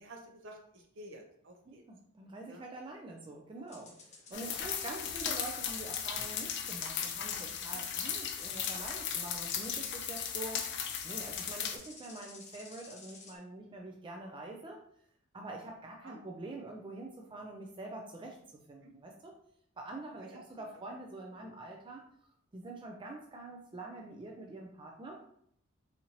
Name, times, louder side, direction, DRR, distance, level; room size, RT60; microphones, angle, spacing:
voice 1, 0.0-1.8 2.5-2.7 3.6-3.7 4.3-4.6 5.0-5.1 16.0-16.2 18.8-18.9 20.2-20.5, right 1 dB, 65° right, 2 dB, 0.7 m, -51 dB
voice 2, 1.7-10.6 11.0-14.8 15.3-18.4 18.7-19.3 19.8-22.0 22.5-25.2, right 2 dB, 25° right, 0 dB, 0.4 m, -45 dB
sound 1, 3.7-13.4, left 4 dB, 35° left, 0.8 m, -54 dB
sound 2, 4.3-11.8, left 8 dB, 60° left, 0.5 m, -37 dB
4.1 x 2.6 x 2.9 m, 0.67 s
head